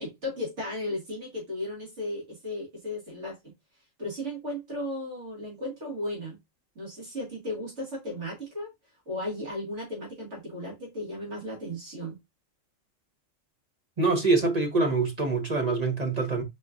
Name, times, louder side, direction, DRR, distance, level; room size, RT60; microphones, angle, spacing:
voice 1, 0.0-3.5 4.0-6.4 6.8-8.7 9.1-12.2, left 1 dB, 60° right, 2.4 m, -35 dB
voice 2, 14.0-16.4, right 3 dB, 30° right, 1.2 m, -25 dB
4.4 x 4.3 x 2.5 m
omnidirectional pair, 1.4 m